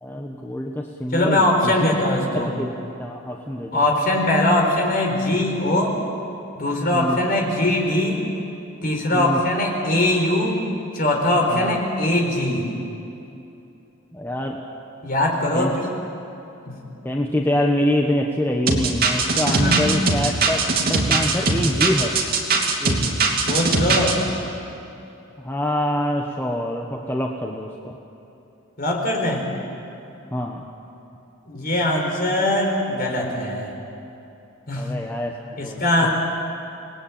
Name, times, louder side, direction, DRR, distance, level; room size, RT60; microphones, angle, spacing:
voice 1, 0.0-2.0 2.3-3.8 6.7-7.2 9.1-9.4 11.5-11.8 14.1-14.6 15.5-15.7 17.0-20.6 20.9-22.2 22.8-23.1 25.4-28.0 30.3-30.7 34.7-36.1, left 1 dB, 10° left, 0 dB, 1.2 m, -25 dB
voice 2, 1.1-2.5 3.7-6.0 6.5-8.2 8.8-10.6 10.9-12.7 15.0-15.7 16.6-16.8 19.6-19.9 23.4-24.2 28.8-29.4 31.5-33.7 34.7-34.9 35.6-36.1, left 1 dB, 45° left, 1 dB, 4.6 m, -21 dB
sound 1, 18.7-24.1, right 3 dB, 45° right, 2.9 m, -20 dB
27.5 x 20.0 x 9.0 m, 2.9 s
head